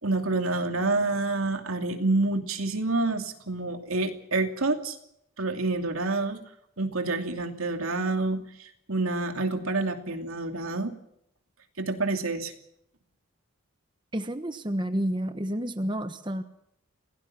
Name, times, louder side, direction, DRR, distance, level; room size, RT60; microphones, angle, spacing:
voice 1, 0.0-5.0 5.4-6.4 6.8-10.9 11.8-12.5, right 2 dB, 85° right, 5 dB, 2.7 m, -28 dB
voice 2, 14.1-16.4, equal, 20° right, 8 dB, 1.2 m, -30 dB
26.5 x 17.5 x 5.9 m, 0.75 s
head